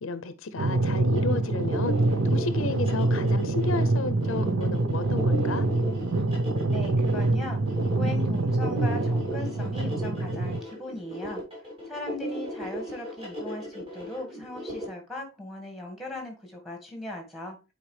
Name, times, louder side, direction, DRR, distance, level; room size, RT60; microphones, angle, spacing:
voice 1, 0.0-2.0 2.3-5.7, left 3 dB, 70° left, 0.6 m, -32 dB
sound 1, 0.6-10.6, right 2 dB, 70° right, 0.7 m, -25 dB
sound 2, 1.1-14.8, equal, 25° right, 3.0 m, -37 dB
voice 2, 6.7-7.6 8.0-11.4 11.9-17.6, left 2 dB, ahead, 1.8 m, -38 dB
9.1 x 4.4 x 3.3 m
head